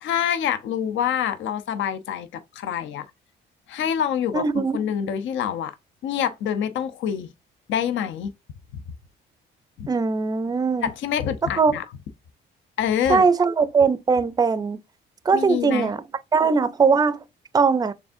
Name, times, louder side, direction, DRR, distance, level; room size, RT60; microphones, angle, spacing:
voice 1, 0.0-3.1 3.7-5.7 6.0-7.3 7.7-8.3 9.8-9.9 10.8-11.8 12.8-13.2 15.3-15.9, left 9 dB, 75° left, 0.6 m, -26 dB
voice 2, 4.3-4.8 9.9-10.9 11.6-11.7 13.1-14.8 15.3-16.0 16.3-17.2 17.5-17.9, right 5 dB, 20° right, 0.4 m, -20 dB
4.7 x 3.5 x 2.5 m
cardioid pair, 90°, 20 cm